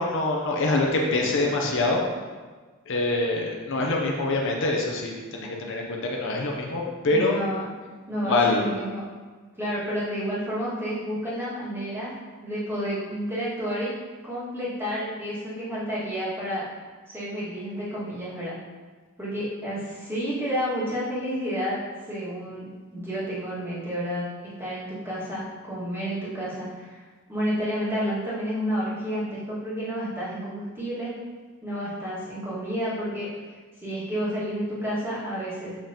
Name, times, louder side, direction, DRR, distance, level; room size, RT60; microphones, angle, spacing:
voice 1, 0.0-2.0 2.9-7.4 8.2-8.6, left 2 dB, 60° left, 0 dB, 0.7 m, -25 dB
voice 2, 7.1-7.6 8.1-9.0 9.6-12.1 12.4-13.9 14.2-16.7 17.1-18.5 19.2-21.8 22.1-27.0 27.3-31.1 31.6-33.3 33.8-35.8, equal, 10° right, -10 dB, 1.9 m, -30 dB
6.6 x 5.5 x 2.9 m, 1.4 s
head